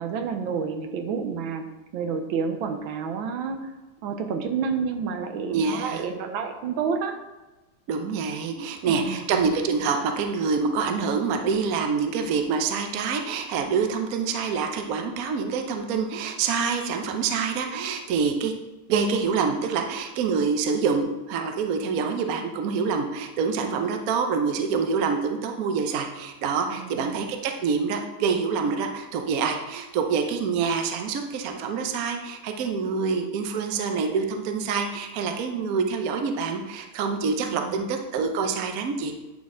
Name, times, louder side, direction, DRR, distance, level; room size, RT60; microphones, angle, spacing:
voice 1, 0.0-1.6 1.9-3.7 4.0-7.2 8.6-9.3 26.7-27.2 37.4-37.8, right 6 dB, 75° right, 6 dB, 1.5 m, -30 dB
voice 2, 5.5-6.1 7.9-18.5 18.9-39.1, right 5 dB, 60° right, 4 dB, 0.9 m, -26 dB
9.4 x 4.2 x 3.7 m, 1.1 s
omnidirectional pair, 2.3 m